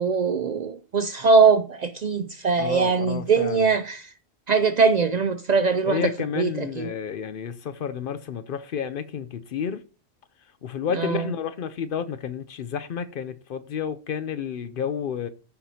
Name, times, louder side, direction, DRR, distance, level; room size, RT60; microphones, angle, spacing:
voice 1, 0.0-4.1 4.5-6.1 6.4-6.9 10.9-11.2, right 5 dB, 55° right, 0.5 m, -21 dB
voice 2, 2.6-3.7 5.9-9.8 10.6-15.3, left 7 dB, 60° left, 0.7 m, -30 dB
14.0 x 5.9 x 2.7 m
omnidirectional pair, 1.1 m